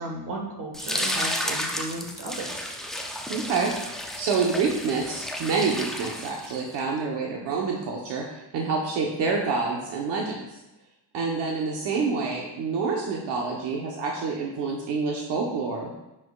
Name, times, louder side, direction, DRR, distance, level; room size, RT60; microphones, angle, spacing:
voice 1, 0.0-2.7, right 2 dB, 40° right, 1 dB, 1.6 m, -35 dB
sound 1, 0.7-6.8, left 1 dB, ahead, 0.4 m, -32 dB
voice 2, 3.3-3.7 4.2-10.5 11.1-15.9, right 4 dB, 60° right, -1 dB, 1.2 m, -27 dB
9.9 x 6.1 x 2.4 m, 0.99 s
cardioid pair, 145°, 46 cm